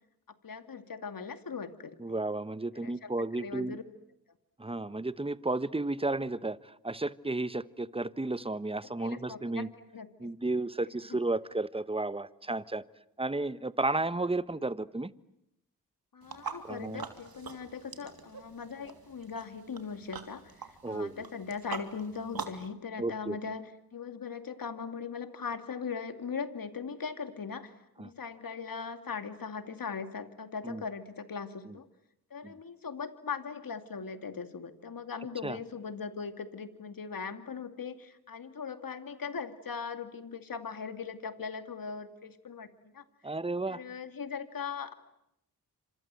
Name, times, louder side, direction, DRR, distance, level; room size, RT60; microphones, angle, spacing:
voice 1, 0.4-2.2 2.7-3.1 3.4-3.8 9.0-9.7 9.9-10.3 11.1-11.2 16.1-31.9 32.3-43.0 43.7-44.9, left 5 dB, 65° left, 9 dB, 2.5 m, -40 dB
voice 2, 2.0-3.8 4.6-9.7 10.2-12.8 13.2-15.1 16.7-17.0 20.8-21.2 23.0-23.4 28.0-28.1 30.6-30.8 31.7-31.8 32.4-32.5 35.4-35.6 43.2-43.8, right 2 dB, 15° right, 16 dB, 1.2 m, -33 dB
sound 1, 16.2-22.7, right 5 dB, 70° right, 2.9 m, -44 dB
28.5 x 26.5 x 7.7 m, 0.80 s
cardioid pair, 40°, 37 cm